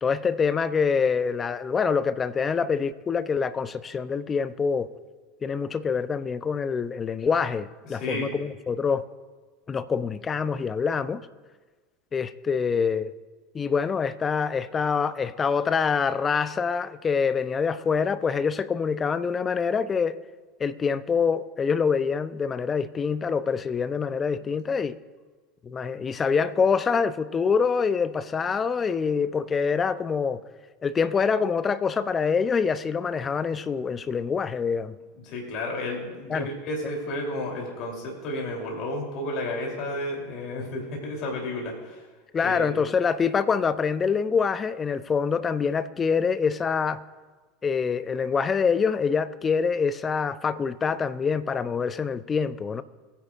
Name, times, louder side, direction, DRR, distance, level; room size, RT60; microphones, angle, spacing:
voice 1, 0.0-4.9 5.4-9.0 9.7-11.2 12.1-13.1 13.5-20.2 20.6-25.0 25.6-30.4 30.8-35.0 36.3-36.5 42.3-47.0 47.6-52.8, left 6 dB, 25° left, 0.6 m, -25 dB
voice 2, 7.9-8.3 35.2-42.0 42.4-42.8, left 1 dB, 50° left, 3.1 m, -32 dB
20.5 x 10.0 x 2.5 m
hypercardioid pair, 85°, 0 cm